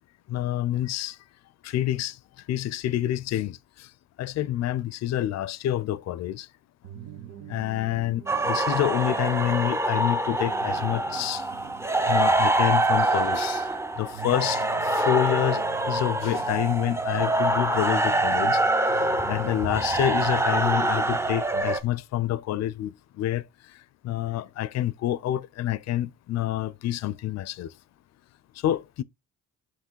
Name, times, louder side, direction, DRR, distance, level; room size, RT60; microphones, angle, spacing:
voice 1, 0.3-1.2 1.6-2.2 2.5-3.9 4.2-6.5 7.5-11.4 12.1-13.7 14.0-18.6 19.3-23.4 24.0-27.7 28.6-29.0, left 12 dB, 60° left, 0.5 m, -27 dB
sound 1, 6.8-21.6, right 13 dB, 90° right, 0.9 m, -45 dB
sound 2, 8.3-21.8, right 2 dB, 10° right, 0.6 m, -25 dB
7.5 x 3.0 x 4.5 m
cardioid pair, 90°, 30 cm